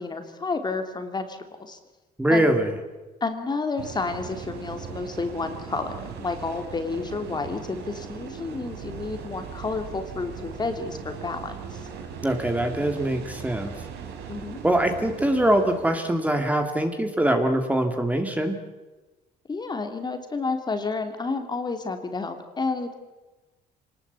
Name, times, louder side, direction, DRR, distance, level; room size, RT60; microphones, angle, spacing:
voice 1, 0.0-1.8 2.3-2.5 3.2-11.8 14.3-14.6 19.5-22.9, left 4 dB, 25° left, 7 dB, 2.9 m, -30 dB
voice 2, 2.2-2.7 12.2-13.7 14.6-18.6, right 1 dB, 10° right, 5 dB, 2.5 m, -23 dB
sound 1, 3.8-16.0, right 7 dB, 80° right, 4.5 m, -39 dB
25.5 x 19.5 x 8.3 m, 1.2 s
cardioid pair, 110°, 17 cm